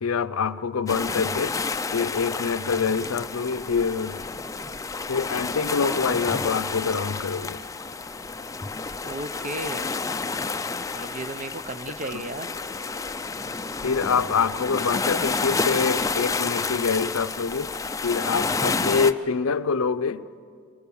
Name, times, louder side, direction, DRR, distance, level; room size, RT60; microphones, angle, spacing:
voice 1, 0.0-1.6 1.9-4.3 5.1-7.6 12.1-12.3 13.8-17.7 18.0-20.3, left 5 dB, 85° left, 0.6 m, -25 dB
sound 1, 0.9-19.1, left 4 dB, 15° left, 0.4 m, -30 dB
voice 2, 9.0-9.9 10.9-12.5, right 2 dB, 35° right, 0.8 m, -34 dB
23.0 x 20.5 x 7.0 m
head